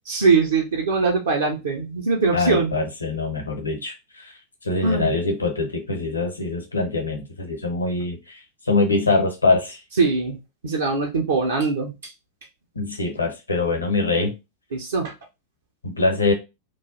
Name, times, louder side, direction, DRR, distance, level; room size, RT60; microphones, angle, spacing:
voice 1, 0.1-2.7 4.8-5.1 10.0-10.4 10.6-11.9 14.7-15.1, right 4 dB, 65° right, 0.6 m, -21 dB
voice 2, 2.3-3.9 4.6-8.2 8.7-9.8 12.8-14.3 15.8-16.3, left 3 dB, 80° left, 0.8 m, -23 dB
3.1 x 2.4 x 3.9 m
figure-of-eight pair, 90°, 0 cm